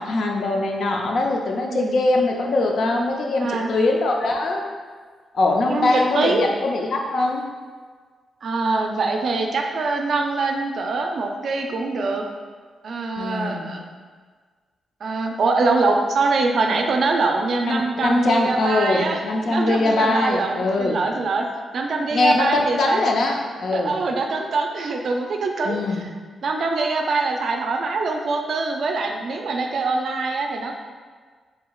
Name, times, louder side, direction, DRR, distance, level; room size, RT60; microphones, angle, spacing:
voice 1, 0.0-4.6 5.3-7.4 13.2-13.8 17.6-21.0 22.1-24.0 25.6-26.0, left 2 dB, 60° left, 1 dB, 0.5 m, -22 dB
voice 2, 3.4-3.7 5.6-6.5 8.4-12.2 12.8-13.8 15.0-19.2 19.5-21.5 21.7-23.0 23.7-25.8 26.4-30.7, right 3 dB, 55° right, 3 dB, 0.4 m, -23 dB
4.9 x 3.6 x 2.3 m, 1.5 s
wide cardioid pair, 150°, 0 cm